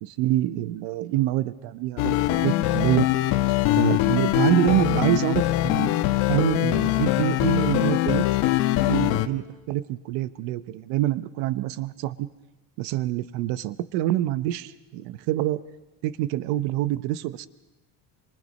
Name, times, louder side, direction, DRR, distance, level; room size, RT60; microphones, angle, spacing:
voice 1, 0.0-3.1 3.8-5.9 6.3-8.2 8.8-12.3 12.8-15.6 16.0-17.5, right 14 dB, 75° right, 13 dB, 1.0 m, -26 dB
sound 1, 2.0-9.3, left 16 dB, 85° left, 1.4 m, -22 dB
27.0 x 27.0 x 5.4 m, 1.1 s
cardioid pair, 165°, 41 cm